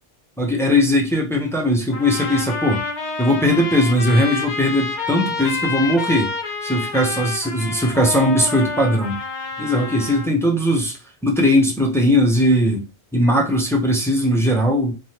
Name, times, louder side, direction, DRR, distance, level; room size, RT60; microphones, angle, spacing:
voice 1, 0.4-2.8 3.2-6.3 6.6-9.2 9.6-11.0 11.2-12.8 13.1-14.9, left 1 dB, 5° left, -1 dB, 0.3 m, -19 dB
sound 1, 1.9-10.3, left 4 dB, 50° left, 0.6 m, -28 dB
3.2 x 2.2 x 2.8 m, 0.33 s
omnidirectional pair, 1.2 m